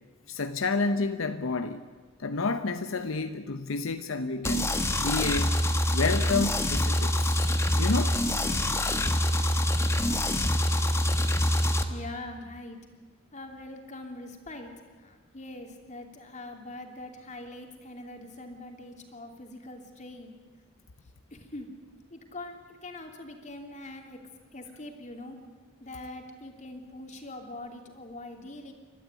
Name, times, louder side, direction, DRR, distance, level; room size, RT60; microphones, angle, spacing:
voice 1, 0.3-1.8 2.2-5.6 5.9-8.2, left 3 dB, 80° left, 9 dB, 0.8 m, -30 dB
sound 1, 4.4-11.8, left 1 dB, 15° left, 1.3 m, -25 dB
voice 2, 11.9-12.8 13.3-14.7 15.0-20.4 21.3-21.7 22.1-24.2 24.5-25.4 25.8-28.7, left 2 dB, 35° left, 3 dB, 2.9 m, -43 dB
29.5 x 13.0 x 9.5 m, 1.4 s
head